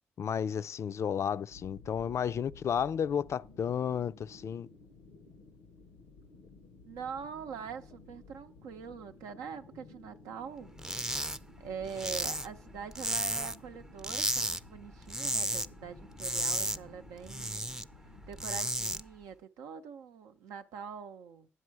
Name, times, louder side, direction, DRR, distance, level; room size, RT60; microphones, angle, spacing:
voice 1, 0.2-4.7, left 8 dB, 55° left, 0.4 m, -32 dB
sound 1, 1.5-18.5, left 3 dB, 85° left, 0.7 m, -55 dB
voice 2, 6.9-10.7 11.6-17.8 18.3-21.5, right 7 dB, 80° right, 0.6 m, -43 dB
sound 2, 10.8-11.4 11.7-13.7 14.0-14.6 14.9-15.7 16.0-17.8 18.2-19.0, right 1 dB, 10° right, 0.5 m, -33 dB
9.8 x 7.5 x 4.6 m
hypercardioid pair, 45°, 6 cm